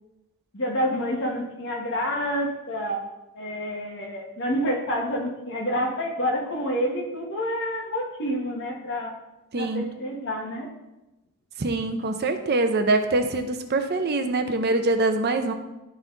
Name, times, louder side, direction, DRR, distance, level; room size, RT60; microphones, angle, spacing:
voice 1, 0.5-3.0 3.3-9.1 9.5-10.7, equal, 55° left, 0 dB, 1.5 m, -28 dB
voice 2, 9.5-9.8 11.6-15.5, right 2 dB, 45° right, 7 dB, 0.6 m, -24 dB
12.0 x 4.0 x 3.9 m, 0.98 s
head